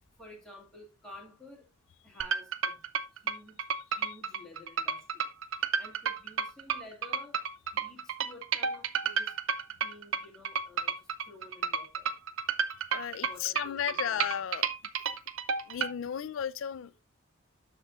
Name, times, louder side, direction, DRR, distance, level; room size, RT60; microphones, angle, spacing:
voice 1, 0.2-1.7 2.0-2.8 3.2-3.6 4.0-7.4 7.7-9.3 9.8-12.1 13.1-14.3, left 1 dB, 5° left, 2.0 m, -52 dB
sound 1, 2.2-15.9, right 6 dB, 75° right, 0.5 m, -31 dB
voice 2, 12.8-14.7 15.1-15.2 15.7-17.0, left 9 dB, 70° left, 0.3 m, -35 dB
12.5 x 4.5 x 2.4 m
head